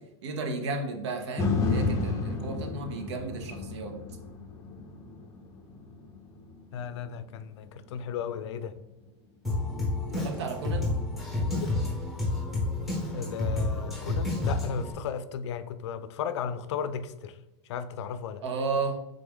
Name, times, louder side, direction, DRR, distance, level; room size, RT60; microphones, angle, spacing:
voice 1, 0.0-4.0 10.1-10.9 18.4-19.0, right 3 dB, 80° right, 0.8 m, -33 dB
sound 1, 1.4-9.5 10.0-10.1, left 3 dB, 25° left, 0.6 m, -33 dB
voice 2, 6.7-8.7 11.3-11.6 13.1-17.3 17.7-18.4, left 7 dB, 80° left, 0.4 m, -35 dB
Drum kit, 9.4-14.9, left 2 dB, ahead, 1.2 m, -30 dB
3.7 x 3.4 x 3.4 m
supercardioid pair, 150°, 14 cm